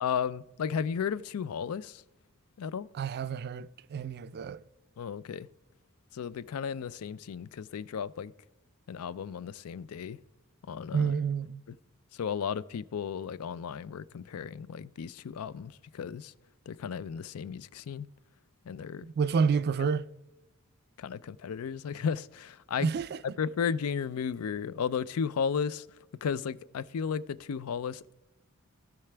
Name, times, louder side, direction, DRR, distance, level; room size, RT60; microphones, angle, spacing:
voice 1, 0.0-2.0 2.6-2.9 5.0-5.5 6.1-8.3 8.9-10.2 10.7-11.1 12.1-16.3 16.7-18.1 18.7-19.1 21.0-22.9 23.4-25.9 26.2-28.2, left 7 dB, 80° left, 0.4 m, -34 dB
voice 2, 3.0-4.6 10.9-11.6 19.0-20.1 22.8-23.2, right 6 dB, 50° right, 0.3 m, -29 dB
17.5 x 5.8 x 3.3 m
head